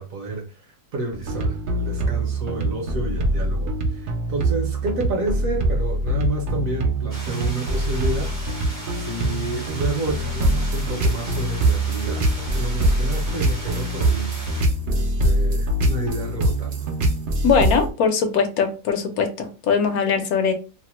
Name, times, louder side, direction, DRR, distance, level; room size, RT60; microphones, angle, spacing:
voice 1, 0.0-14.3 14.9-16.9, right 3 dB, 65° right, 1.0 m, -30 dB
sound 1, 1.1-17.9, right 1 dB, 80° right, 0.4 m, -23 dB
sound 2, 7.1-14.6, right 1 dB, 20° right, 0.5 m, -37 dB
voice 2, 17.4-20.5, left 6 dB, 75° left, 1.1 m, -21 dB
2.8 x 2.1 x 3.0 m
omnidirectional pair, 1.7 m